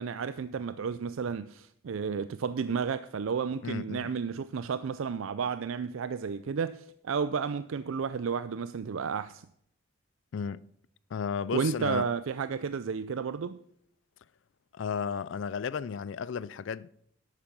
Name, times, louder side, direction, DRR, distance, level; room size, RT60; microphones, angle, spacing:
voice 1, 0.0-9.5 11.5-13.6, right 6 dB, 75° right, 0.4 m, -32 dB
voice 2, 3.6-4.1 10.3-10.6 11.1-12.1 14.7-16.9, left 6 dB, 60° left, 0.4 m, -34 dB
11.5 x 8.6 x 6.0 m
head